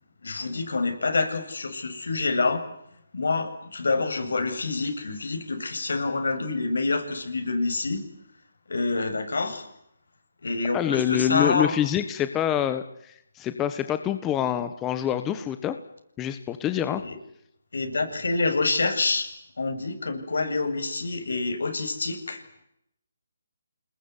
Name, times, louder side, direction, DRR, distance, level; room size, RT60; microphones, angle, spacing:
voice 1, 0.2-2.6 3.1-8.0 8.7-9.7 10.4-11.7 17.0-17.2 17.7-19.3 19.6-22.4, left 3 dB, 80° left, 7 dB, 7.8 m, -27 dB
voice 2, 10.7-15.7 16.2-17.0, left 10 dB, 10° left, 10 dB, 1.3 m, -26 dB
28.0 x 21.0 x 9.8 m, 0.75 s
hypercardioid pair, 165°, 0 cm